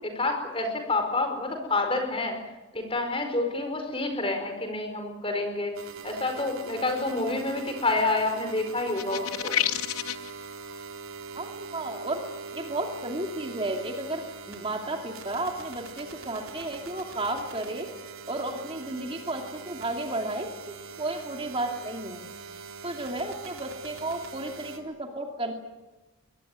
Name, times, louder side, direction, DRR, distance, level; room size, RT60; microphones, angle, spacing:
voice 1, 0.0-2.4 2.7-5.7 6.0-9.6, left 2 dB, 25° left, 5 dB, 4.8 m, -28 dB
sound 1, 5.7-24.8, right 5 dB, 80° right, 3.9 m, -42 dB
sound 2, 8.9-10.3, left 11 dB, 85° left, 1.0 m, -29 dB
voice 2, 11.3-12.2 12.5-17.9 18.3-20.5 21.0-22.2 22.8-25.5, right 2 dB, 25° right, 3 dB, 2.5 m, -33 dB
23.0 x 20.0 x 9.6 m, 1.1 s
head